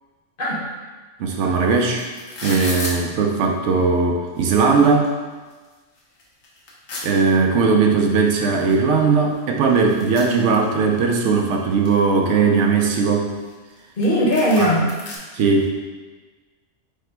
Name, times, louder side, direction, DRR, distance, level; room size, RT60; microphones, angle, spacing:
voice 1, 1.2-2.0 2.4-5.1 7.0-13.3 14.6-14.7 15.3-15.7, right 4 dB, 75° right, 1 dB, 0.9 m, -18 dB
sound 1, 1.4-1.5 1.7-2.9 3.8-3.9 4.3-5.1 5.5-5.6 6.0-7.1 8.2-8.3 8.7-8.8 9.0-11.0 11.4-12.0 12.5-13.8 14.0-14.1 14.3-15.2, left 2 dB, 85° left, 1.2 m, -34 dB
voice 2, 14.0-14.8, equal, 50° left, -5 dB, 1.0 m, -18 dB
4.9 x 2.1 x 4.4 m, 1.3 s
omnidirectional pair, 1.3 m